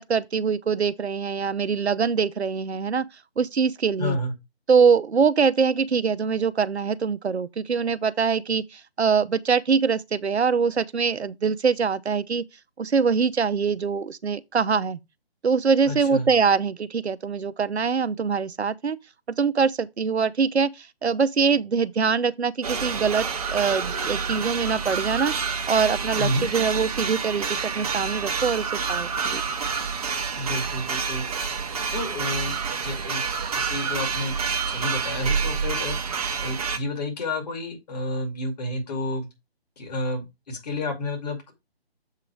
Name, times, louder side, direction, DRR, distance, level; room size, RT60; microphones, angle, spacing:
voice 1, 0.0-3.1 3.4-4.2 4.7-12.4 12.8-15.0 15.4-19.0 19.3-23.2 23.5-25.3 25.7-27.5 27.7-29.4, right 5 dB, 80° right, 0.7 m, -23 dB
voice 2, 4.0-4.3 15.9-16.3 26.2-26.5 30.3-31.2 31.9-33.2 33.5-34.4 34.7-36.0 36.4-39.3 39.8-41.5, left 1 dB, 40° left, 2.4 m, -30 dB
sound 1, 22.6-36.8, right 5 dB, 35° right, 0.9 m, -28 dB
7.5 x 3.8 x 4.6 m
figure-of-eight pair, 150°, 32 cm